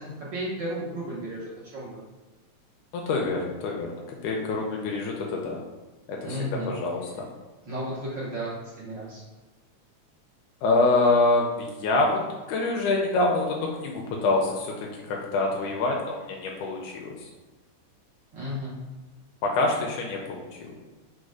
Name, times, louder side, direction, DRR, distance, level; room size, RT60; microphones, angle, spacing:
voice 1, 0.0-2.0 6.2-6.7 7.6-9.2 18.3-18.8, equal, 90° right, -8 dB, 1.0 m, -33 dB
voice 2, 2.9-3.9 4.2-5.6 6.1-6.4 6.7-7.3 10.6-12.2 12.5-14.8 15.1-17.1 19.4-20.8, left 2 dB, 85° left, -1 dB, 2.1 m, -25 dB
5.2 x 2.1 x 4.7 m, 1.2 s
omnidirectional pair, 3.4 m